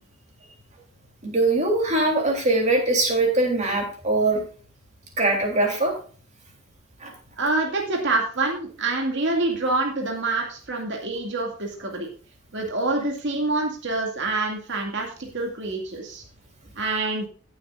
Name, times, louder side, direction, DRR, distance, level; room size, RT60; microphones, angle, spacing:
voice 1, 1.2-4.4 5.2-5.9 7.0-7.1, right 2 dB, 35° right, 2 dB, 3.3 m, -22 dB
voice 2, 7.4-12.1 12.5-16.2 16.8-17.3, right 2 dB, 55° right, 1 dB, 2.3 m, -26 dB
17.0 x 7.9 x 2.5 m, 0.41 s
head